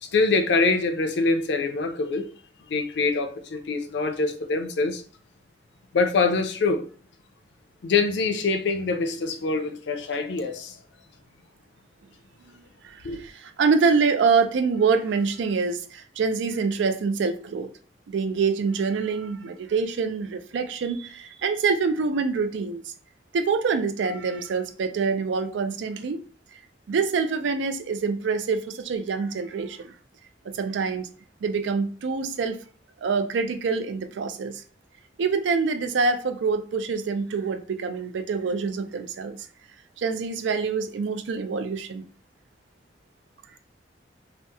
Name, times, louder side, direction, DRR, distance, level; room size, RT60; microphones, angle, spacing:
voice 1, 0.0-2.3 2.7-5.0 5.9-6.8 7.8-10.7 13.0-13.2, left 3 dB, 70° left, 0.4 m, -24 dB
voice 2, 12.8-17.7 18.1-22.9 23.3-26.2 26.9-29.9 30.5-31.1 31.4-32.6 33.0-34.6 35.2-39.4 40.0-42.0, right 5 dB, 85° right, 0.4 m, -25 dB
2.8 x 2.0 x 3.4 m
head